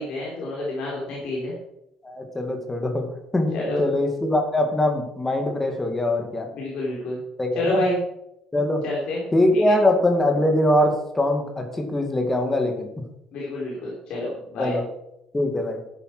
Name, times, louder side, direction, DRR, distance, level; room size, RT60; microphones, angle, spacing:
voice 1, 0.0-1.5 3.5-3.8 6.5-7.2 7.5-8.0 8.8-9.2 9.5-9.8 13.3-14.7, left 1 dB, 50° left, -5 dB, 4.2 m, -28 dB
voice 2, 2.0-6.5 7.4-7.9 8.5-8.8 9.3-12.9 14.6-14.8 15.3-15.8, left 1 dB, 10° left, 4 dB, 2.0 m, -22 dB
12.0 x 9.8 x 6.1 m, 0.84 s
cardioid pair, 175°, 2 cm